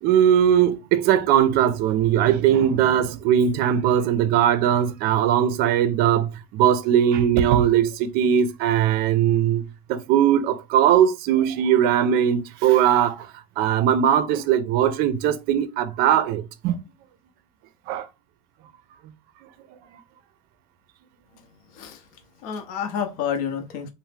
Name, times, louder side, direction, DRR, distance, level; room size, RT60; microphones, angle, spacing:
voice 1, 0.0-13.3 13.6-16.8 17.9-18.1, right 10 dB, 50° right, 0.4 m, -20 dB
voice 2, 21.7-23.9, left 8 dB, 70° left, 0.7 m, -30 dB
2.8 x 2.0 x 3.3 m
cardioid pair, 145°, 20 cm